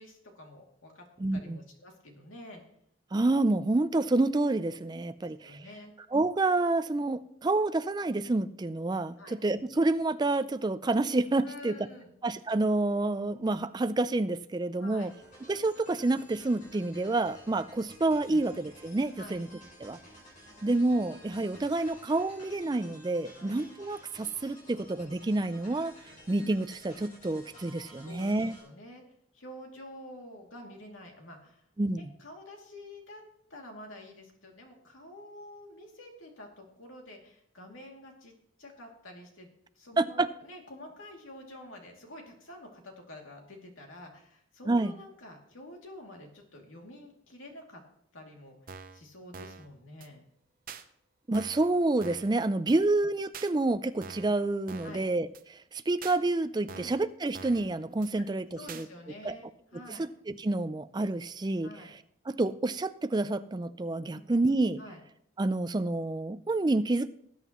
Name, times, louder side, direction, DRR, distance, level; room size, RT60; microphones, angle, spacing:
voice 1, 0.0-1.1 1.3-2.6 5.2-5.9 9.2-9.4 11.4-12.1 14.8-15.1 18.3-18.4 19.2-19.4 23.3-23.5 28.0-28.3 28.6-29.0 29.3-31.6 32.0-33.2 33.5-47.8 48.1-48.5 48.9-50.2 52.6-52.7 54.8-55.0 56.7-56.9 58.2-58.3 58.6-60.1 61.6-61.9 64.1-64.3 64.8-65.0, left 1 dB, 80° left, 1 dB, 2.6 m, -48 dB
voice 2, 1.2-1.6 3.1-5.6 6.1-11.9 12.2-15.1 15.5-19.5 19.8-20.0 20.6-25.9 26.3-28.6 31.8-32.0 40.0-40.3 44.7-44.9 51.3-58.9 59.2-59.3 59.9-61.7 62.3-64.8 65.4-67.1, right 2 dB, 20° right, 12 dB, 0.4 m, -28 dB
sound 1, 14.9-28.6, equal, 40° left, 5.6 m, -53 dB
sound 2, 48.7-49.0 49.3-49.7 50.0-50.1 50.7-50.8 51.3-51.7 52.0-52.3 52.7-52.8 53.3-53.5 54.0-54.3 54.7-55.0 55.3-55.4 56.0-56.2 56.7-57.0 57.3-57.7 58.0-58.1 58.7-58.9, right 5 dB, 45° right, 0.7 m, -45 dB
19.0 x 9.0 x 3.1 m, 0.71 s
head